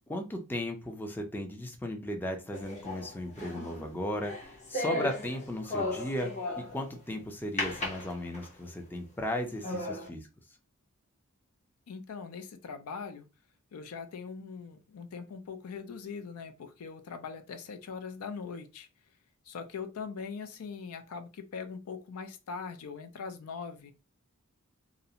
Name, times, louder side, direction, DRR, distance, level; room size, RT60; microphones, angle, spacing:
voice 1, 0.1-6.3 6.6-10.3, left 1 dB, 10° left, 0.4 m, -36 dB
sound 1, 2.5-6.9 7.6-8.7 9.2-9.3 9.6-10.1, left 2 dB, 30° left, 0.7 m, -36 dB
voice 2, 11.9-13.3 13.7-18.9 19.5-23.9, left 5 dB, 75° left, 0.4 m, -41 dB
2.4 x 2.0 x 2.8 m
head